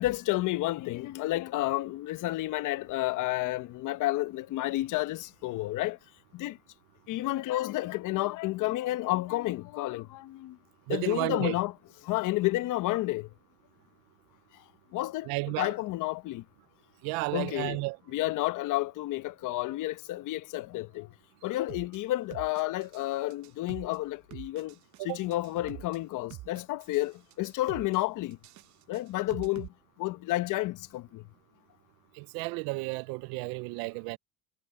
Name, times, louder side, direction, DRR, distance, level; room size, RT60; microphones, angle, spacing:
voice 1, 0.0-6.0 6.3-6.6 7.1-10.6 10.9-11.7 12.0-13.3 14.9-15.3 15.6-16.4 17.3-17.8 18.1-21.1 21.4-24.7 25.0-28.4 28.9-29.7 30.0-31.2, left 17 dB, 60° left, 0.9 m, -31 dB
voice 2, 10.9-11.5 15.2-15.7 17.0-18.0 25.0-25.2 32.2-34.2, right 25 dB, 85° right, 0.7 m, -33 dB
sound 1, 21.7-22.0 22.3-23.1 23.3-24.0 24.3-25.0 25.3-26.0 26.3-27.1 27.3-28.0 28.3-29.7, right 16 dB, 55° right, 0.9 m, -45 dB
cardioid pair, 130°, 36 cm